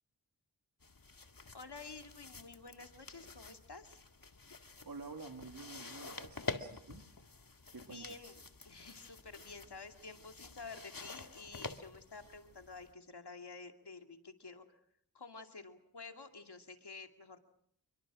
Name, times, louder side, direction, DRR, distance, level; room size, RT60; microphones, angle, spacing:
sound 1, 0.8-12.9, left 4 dB, 60° left, 2.0 m, -48 dB
voice 1, 1.5-4.0 7.8-14.8 15.1-17.4, left 4 dB, 85° left, 6 dB, 2.5 m, -51 dB
voice 2, 4.8-7.0 7.7-8.4, right 4 dB, 65° right, 4 dB, 2.2 m, -49 dB
28.0 x 23.5 x 6.2 m, 0.67 s
wide cardioid pair, 50°, 39 cm